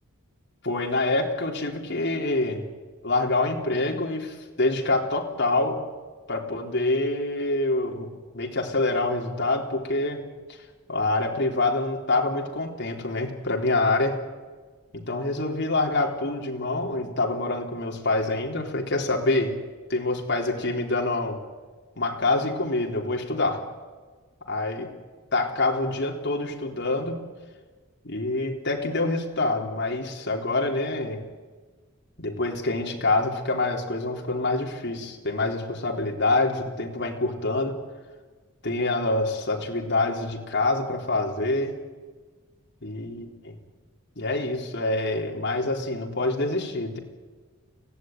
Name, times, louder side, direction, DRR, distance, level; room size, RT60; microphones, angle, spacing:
voice 1, 0.6-2.6 3.0-5.8 6.3-10.2 10.9-14.2 14.9-19.5 19.9-21.4 22.0-23.6 24.5-24.9 25.3-27.2 28.0-31.2 32.2-37.8 38.6-41.8 42.8-43.6 44.2-47.0, left 2 dB, 55° left, 0 dB, 3.8 m, -26 dB
25.0 x 16.5 x 9.5 m, 1.4 s
head